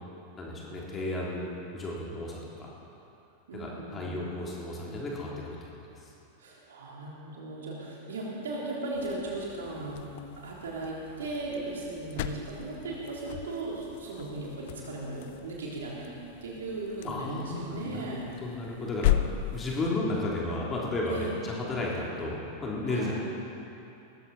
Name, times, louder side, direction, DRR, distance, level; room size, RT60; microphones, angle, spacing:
voice 1, 0.4-2.7 3.5-5.7 17.0-18.1 18.4-19.1 19.5-23.1, left 2 dB, 20° left, -4 dB, 3.4 m, -33 dB
voice 2, 3.5-4.2 6.4-10.1 10.4-16.2 16.4-18.3 21.1-21.4 22.8-23.1, right 2 dB, 65° right, -4 dB, 3.6 m, -37 dB
sound 1, 8.9-20.1, left 13 dB, 50° left, 0.6 m, -36 dB
18.5 x 15.0 x 4.4 m, 2.9 s
figure-of-eight pair, 90°, 0 cm